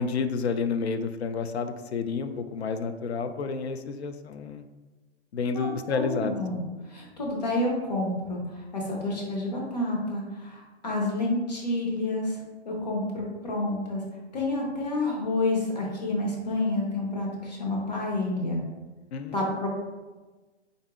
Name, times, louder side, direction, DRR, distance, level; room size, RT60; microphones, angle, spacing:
voice 1, 0.0-4.6 5.3-6.3 19.1-19.4, left 5 dB, 65° left, 9 dB, 0.5 m, -30 dB
voice 2, 5.5-6.6 6.9-12.4 12.6-14.0 14.3-18.6 19.3-19.7, left 2 dB, 35° left, -2 dB, 0.9 m, -29 dB
4.8 x 2.7 x 3.5 m, 1.2 s
hypercardioid pair, 180°, 35 cm